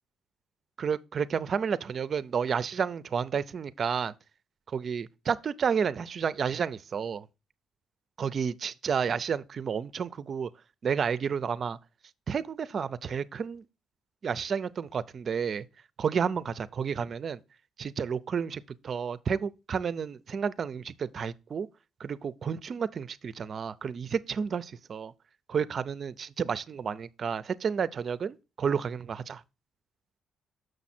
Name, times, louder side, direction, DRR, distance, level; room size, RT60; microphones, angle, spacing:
voice 1, 0.8-4.1 4.7-7.3 8.2-10.5 10.8-11.8 12.3-13.6 14.2-15.7 16.0-17.4 17.8-21.7 22.0-25.1 25.5-29.4, right 6 dB, 50° right, 0.4 m, -31 dB
6.5 x 6.1 x 4.2 m
cardioid pair, 90°, 0 cm